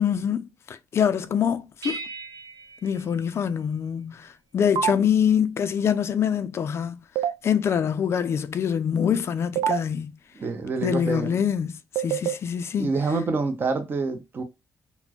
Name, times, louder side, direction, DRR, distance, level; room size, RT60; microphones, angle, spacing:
voice 1, 0.0-2.0 2.8-7.0 7.4-10.2 10.8-12.9, left 8 dB, 45° left, 0.4 m, -25 dB
sound 1, 1.8-4.0, right 3 dB, 65° right, 1.0 m, -39 dB
sound 2, 4.8-4.9 7.2-7.3 9.6-9.8 12.0-12.3, right 10 dB, 85° right, 0.3 m, -23 dB
voice 2, 10.4-11.4 12.8-14.4, right 4 dB, 35° right, 0.7 m, -27 dB
4.1 x 2.1 x 2.9 m
cardioid pair, 115°, 6 cm